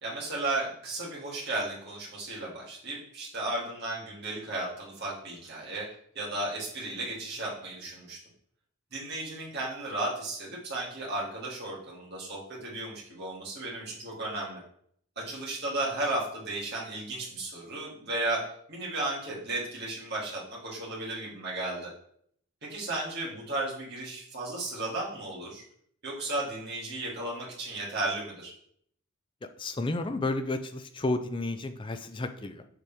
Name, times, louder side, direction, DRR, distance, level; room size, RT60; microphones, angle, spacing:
voice 1, 0.0-5.9 6.1-8.2 8.9-14.6 15.2-18.4 18.7-21.9 22.6-25.6 26.0-28.5, right 2 dB, 50° right, -5 dB, 2.4 m, -34 dB
voice 2, 29.6-32.7, left 2 dB, 20° left, 9 dB, 0.4 m, -31 dB
6.6 x 4.9 x 3.5 m, 0.65 s
head